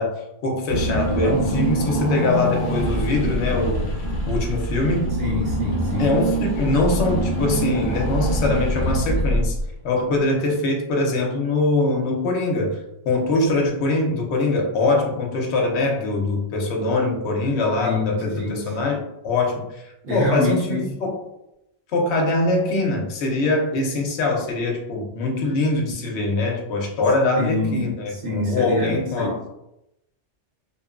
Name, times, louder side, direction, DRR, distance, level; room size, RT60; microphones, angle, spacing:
voice 1, 0.0-4.0 4.3-5.1 6.0-9.6 9.8-12.8 13.0-19.8 20.1-21.2 21.9-29.4, left 2 dB, 70° left, 0 dB, 0.9 m, -23 dB
Car / Engine, 0.7-9.9, right 1 dB, 40° left, 0.6 m, -24 dB
voice 2, 5.2-6.1 17.8-19.0 20.0-20.9 27.3-29.5, left 2 dB, 65° right, -5 dB, 1.1 m, -27 dB
2.8 x 2.2 x 2.3 m, 0.85 s
omnidirectional pair, 1.3 m